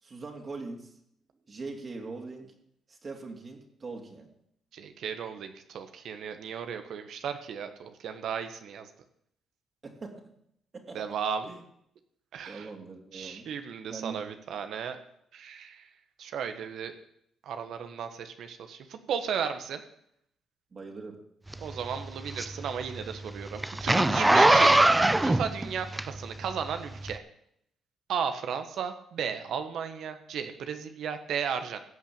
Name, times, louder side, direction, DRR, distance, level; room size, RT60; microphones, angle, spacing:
voice 1, 0.0-1.0 1.5-2.5 2.9-4.3 9.8-10.3 10.7-11.0 11.4-11.6 12.5-13.5 13.9-14.3 20.7-21.2, right 3 dB, 40° right, 1 dB, 2.9 m, -41 dB
voice 2, 4.7-8.9 10.9-11.4 12.3-12.7 13.1-15.0 15.3-15.9 16.2-17.0 17.4-19.8 21.6-24.7 25.2-27.2 28.1-31.8, right 7 dB, 70° right, 8 dB, 1.3 m, -35 dB
Zipper (clothing), 21.5-26.5 27.0-27.1, right 1 dB, 15° right, 0.6 m, -22 dB
16.0 x 5.9 x 8.9 m, 0.74 s
cardioid pair, 90°, 0 cm